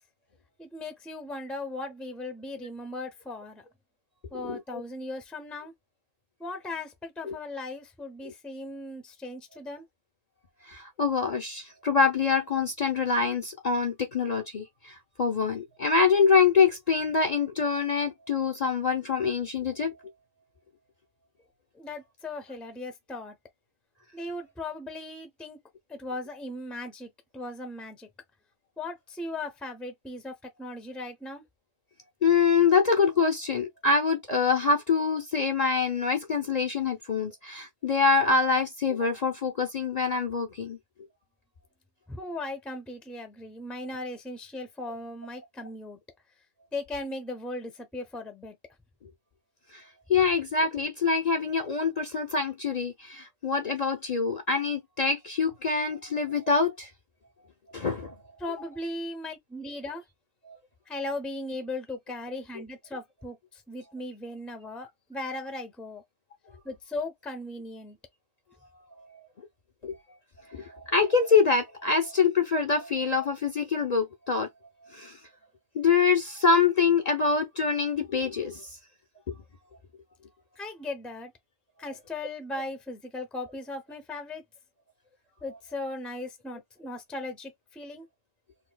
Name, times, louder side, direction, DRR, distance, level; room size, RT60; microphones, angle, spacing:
voice 1, 0.6-3.6 4.3-5.7 6.4-9.8 21.7-23.4 24.1-25.6 25.9-28.1 28.8-31.4 42.1-46.0 46.7-48.6 58.4-60.0 60.9-66.0 66.6-68.0 80.6-81.3 81.8-84.4 85.4-88.0, left 2 dB, ahead, 0.7 m, -37 dB
voice 2, 10.7-19.9 32.2-40.8 49.7-49.8 50.1-56.9 57.7-58.1 60.5-60.6 69.0-69.1 69.8-70.0 70.5-74.5 74.9-75.2 75.7-78.7 79.3-79.4, left 5 dB, 40° left, 0.7 m, -25 dB
4.2 x 2.7 x 2.3 m
omnidirectional pair, 1.2 m